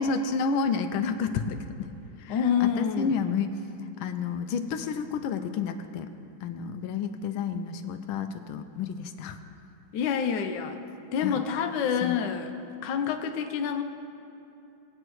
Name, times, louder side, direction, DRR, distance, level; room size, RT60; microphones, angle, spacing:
voice 1, 0.0-1.9 2.2-6.1 6.4-9.4 11.2-11.4 12.0-12.2, left 5 dB, 85° left, 7 dB, 1.5 m, -30 dB
voice 2, 2.3-3.1 9.9-10.8 11.1-12.5 12.8-13.8, left 7 dB, 70° left, 5 dB, 1.3 m, -27 dB
20.0 x 8.8 x 3.1 m, 2.9 s
omnidirectional pair, 2.2 m